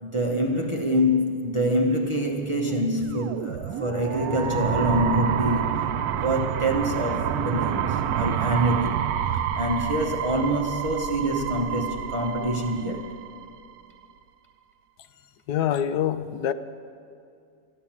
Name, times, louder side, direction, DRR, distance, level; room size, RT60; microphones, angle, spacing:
voice 1, 0.0-5.9 6.2-9.1 9.3-13.1, equal, 25° right, 0.7 m, -26 dB
sound 1, 2.8-13.7, right 9 dB, 75° right, 1.1 m, -28 dB
voice 2, 15.5-16.5, left 10 dB, 80° left, 1.1 m, -25 dB
14.0 x 10.5 x 7.3 m
omnidirectional pair, 1.7 m